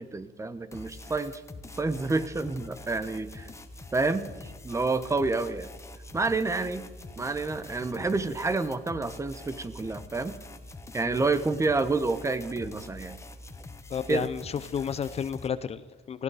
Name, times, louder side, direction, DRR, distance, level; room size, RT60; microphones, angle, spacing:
voice 1, 0.0-1.4 1.8-3.5 3.9-5.7 6.1-6.8 7.2-10.4 10.9-13.2 14.1-14.3, right 3 dB, 15° right, 13 dB, 1.0 m, -29 dB
sound 1, 0.7-15.5, left 2 dB, 15° left, 1.2 m, -45 dB
voice 2, 13.9-16.2, left 7 dB, 40° left, 14 dB, 0.6 m, -32 dB
19.0 x 14.5 x 4.9 m, 1.2 s
cardioid pair, 110°, 17 cm